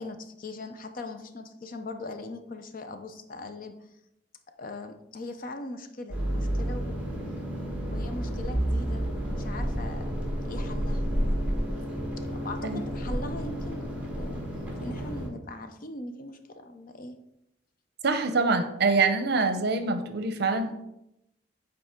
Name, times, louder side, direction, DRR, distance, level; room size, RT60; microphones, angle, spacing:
voice 1, 0.0-3.8 4.6-7.1 7.6-10.2 10.5-11.5 12.3-13.9 14.1-17.2, left 2 dB, 50° left, 7 dB, 0.6 m, -40 dB
sound 1, 6.1-15.3, equal, 10° right, 1.3 m, -30 dB
voice 2, 18.0-20.8, right 3 dB, 65° right, 9 dB, 0.7 m, -25 dB
7.8 x 4.1 x 3.6 m, 0.84 s
head